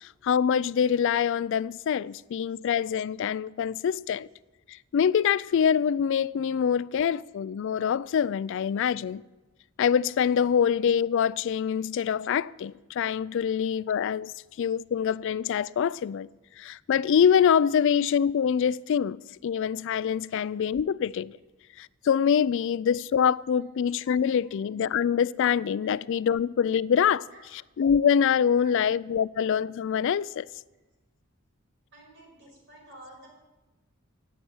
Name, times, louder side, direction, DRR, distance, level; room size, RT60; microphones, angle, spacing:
voice 1, 0.0-4.3 4.7-9.2 9.8-14.3 14.6-16.3 16.6-21.3 21.8-27.3 27.8-30.5, left 7 dB, 65° left, 0.3 m, -25 dB
voice 2, 31.9-33.3, right 1 dB, 60° right, 5.8 m, -51 dB
11.5 x 8.4 x 9.4 m
head